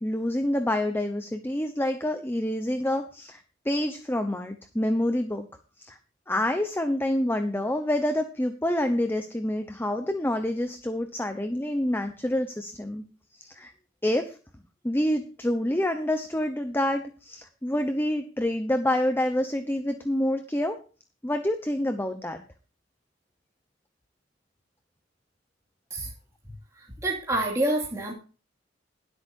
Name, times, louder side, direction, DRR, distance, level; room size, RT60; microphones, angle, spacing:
voice 1, 0.0-5.4 5.8-6.0 6.3-13.0 13.4-13.7 14.0-14.4 14.8-20.8 21.2-22.4, left 1 dB, 10° left, 7 dB, 0.9 m, -27 dB
voice 2, 27.0-28.1, right 1 dB, 15° right, -2 dB, 2.6 m, -27 dB
21.5 x 8.2 x 2.7 m, 0.36 s
head